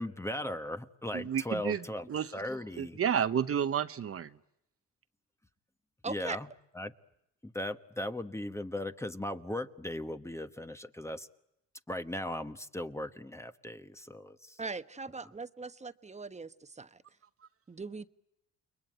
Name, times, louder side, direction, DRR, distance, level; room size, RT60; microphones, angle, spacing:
voice 1, 0.0-3.0 6.1-6.5 6.7-6.9 7.4-11.3 11.9-14.6, left 1 dB, 10° left, 9 dB, 1.2 m, -38 dB
voice 2, 1.1-1.8 2.1-2.3 2.8-4.3, right 8 dB, 50° right, 10 dB, 1.0 m, -30 dB
voice 3, 6.0-6.4 14.6-17.0 17.7-18.1, right 4 dB, 25° right, 11 dB, 1.2 m, -40 dB
29.5 x 22.0 x 9.2 m, 0.83 s
cardioid pair, 90°, 30 cm